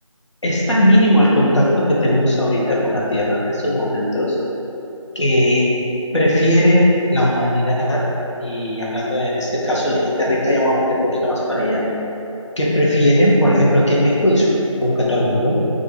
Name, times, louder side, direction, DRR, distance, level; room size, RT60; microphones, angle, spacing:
voice 1, 0.4-4.4 5.1-5.7 6.1-8.1 8.4-11.8 12.6-14.5 14.8-15.6, equal, 60° left, -5 dB, 0.8 m, -17 dB
3.8 x 2.4 x 3.0 m, 2.9 s
figure-of-eight pair, 175°, 17 cm